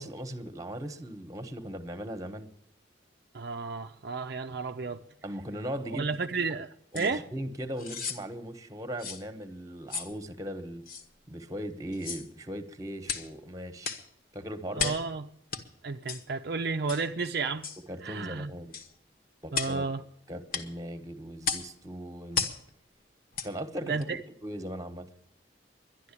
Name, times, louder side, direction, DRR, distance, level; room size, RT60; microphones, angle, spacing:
voice 1, 0.0-2.5 5.2-6.2 6.9-10.8 11.3-14.0 14.3-14.9 17.9-18.7 19.4-19.9 20.3-22.4 23.4-25.1, equal, 20° right, 1.2 m, -38 dB
voice 2, 3.3-5.0 5.9-6.7 6.9-7.2 14.7-15.2 15.8-17.7 18.0-18.5 19.5-20.0 23.9-24.2, right 4 dB, 60° right, 0.5 m, -32 dB
sound 1, 6.9-7.1 7.8-8.2 9.0-9.2 9.9-10.1 10.9-11.0 11.9-12.3 13.0-13.3 13.8-14.1 14.8-15.1 15.5-15.6 16.1-16.2 16.9-17.1 17.6-17.8 18.7-18.9 19.5-19.8 20.5-20.7 21.4-21.7 22.3-22.6 23.3-23.5 24.0-24.1, left 6 dB, 50° left, 1.2 m, -34 dB
11.5 x 11.0 x 8.5 m
head